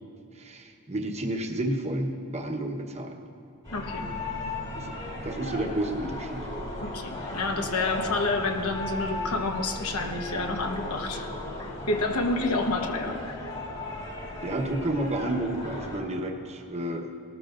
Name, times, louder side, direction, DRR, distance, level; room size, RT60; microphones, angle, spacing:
voice 1, 0.3-3.2 4.7-5.0 5.2-6.5 14.4-17.1, right 1 dB, 30° right, 2 dB, 1.1 m, -31 dB
sound 1, 3.6-16.0, left 1 dB, 30° left, 3.0 m, -36 dB
voice 2, 3.7-4.1 6.8-11.3 11.6-13.5, left 3 dB, 75° left, 4 dB, 1.1 m, -29 dB
19.0 x 13.0 x 2.5 m, 2.6 s
head